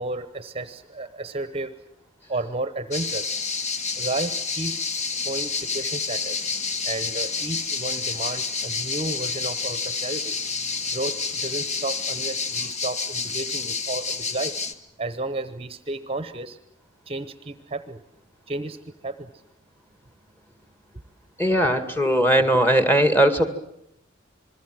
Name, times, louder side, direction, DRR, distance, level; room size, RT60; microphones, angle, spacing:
voice 1, 0.0-1.7 2.3-3.3 4.0-6.5 6.8-10.3 10.9-11.1 11.4-14.5 15.0-16.6 17.1-18.0 18.5-18.8 19.0-19.3, right 2 dB, 30° right, 12 dB, 1.0 m, -32 dB
sound 1, 2.9-14.7, left 4 dB, 35° left, 1.4 m, -29 dB
voice 2, 21.4-23.5, right 1 dB, 10° left, 9 dB, 2.0 m, -19 dB
28.0 x 21.5 x 7.7 m, 0.77 s
head